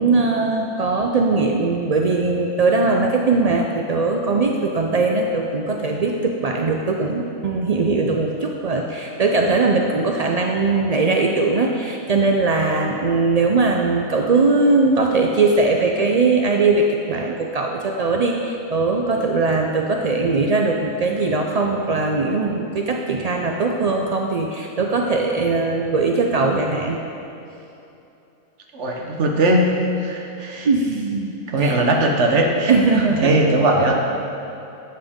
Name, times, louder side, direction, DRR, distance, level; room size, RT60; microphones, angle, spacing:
voice 1, 0.0-27.0 30.6-31.3 31.6-31.8 32.7-33.3, right 3 dB, 75° right, 1 dB, 0.3 m, -20 dB
voice 2, 28.7-29.7 30.0-30.7 31.5-32.7 33.2-34.0, right 1 dB, 60° right, 1 dB, 1.3 m, -19 dB
12.0 x 7.6 x 3.6 m, 2.8 s
omnidirectional pair, 1.4 m